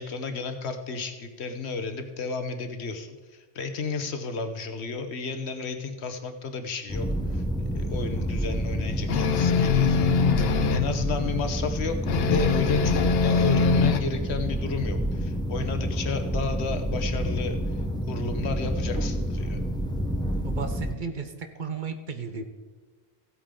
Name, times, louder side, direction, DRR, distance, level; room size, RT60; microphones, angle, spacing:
voice 1, 0.0-7.1 7.3-7.4 7.7-10.3 10.7-17.6 18.1-19.6, left 4 dB, 85° left, 7 dB, 1.3 m, -32 dB
sound 1, 6.9-20.9, equal, 5° left, 0.8 m, -29 dB
sound 2, 9.1-10.9 12.1-14.0, left 5 dB, 70° left, 0.9 m, -22 dB
voice 2, 20.4-22.4, right 5 dB, 50° right, 7 dB, 0.9 m, -34 dB
15.5 x 8.4 x 3.7 m, 1.3 s
omnidirectional pair, 1.1 m